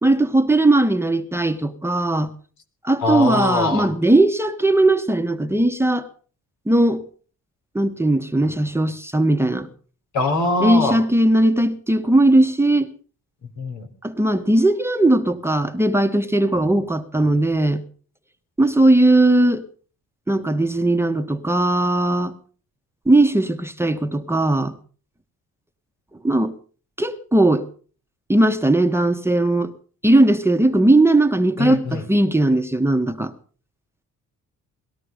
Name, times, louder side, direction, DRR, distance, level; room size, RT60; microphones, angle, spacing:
voice 1, 0.0-2.3 2.8-6.1 6.7-7.0 7.7-9.7 10.6-12.9 14.0-17.8 18.6-19.6 20.3-22.3 23.1-24.7 26.2-26.5 27.0-27.7 28.3-29.7 30.0-33.3, right 1 dB, 10° right, 1.3 m, -18 dB
voice 2, 3.0-3.9 10.1-11.0 13.6-13.9 31.6-32.1, left 2 dB, 70° left, 3.5 m, -22 dB
20.0 x 13.0 x 5.1 m
cardioid pair, 90°, 30 cm